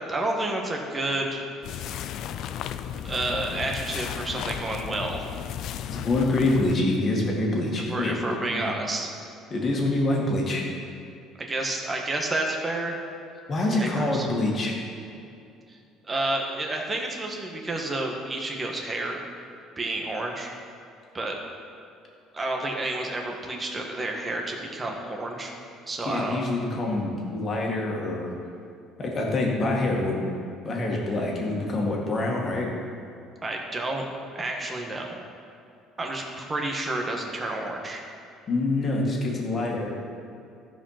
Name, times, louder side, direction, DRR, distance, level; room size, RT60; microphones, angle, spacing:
voice 1, 0.0-1.4 3.0-5.2 7.9-9.1 11.4-13.0 13.7-14.3 15.7-15.8 16.0-19.2 19.8-20.5 21.1-21.4 22.3-25.5 25.9-26.4 33.4-34.0 34.3-35.2 36.0-38.0, right 2 dB, 20° right, 1 dB, 1.4 m, -30 dB
sound 1, 1.6-6.8, left 9 dB, 60° left, 0.4 m, -34 dB
voice 2, 5.9-8.7 9.5-10.6 13.5-14.8 26.1-28.3 29.0-30.2 30.6-32.7 38.5-39.9, left 2 dB, 35° left, -1 dB, 2.0 m, -26 dB
14.0 x 5.1 x 5.8 m, 2.5 s
cardioid pair, 125°, 0 cm